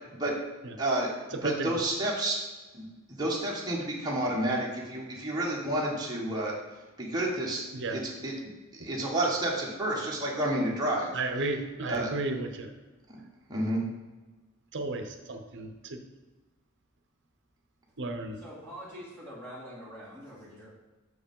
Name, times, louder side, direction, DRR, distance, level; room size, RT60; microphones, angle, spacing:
voice 1, 0.8-2.4 2.7-6.5 7.0-8.3 8.8-11.1 11.9-12.1 13.5-13.8, right 1 dB, 20° right, -4 dB, 1.3 m, -30 dB
voice 2, 1.4-1.7 7.7-8.0 11.1-12.7 14.7-16.0 18.0-18.4, right 3 dB, 55° right, 6 dB, 0.8 m, -33 dB
voice 3, 18.3-20.7, equal, 10° left, -7 dB, 2.2 m, -44 dB
6.2 x 4.9 x 5.3 m, 1.2 s
head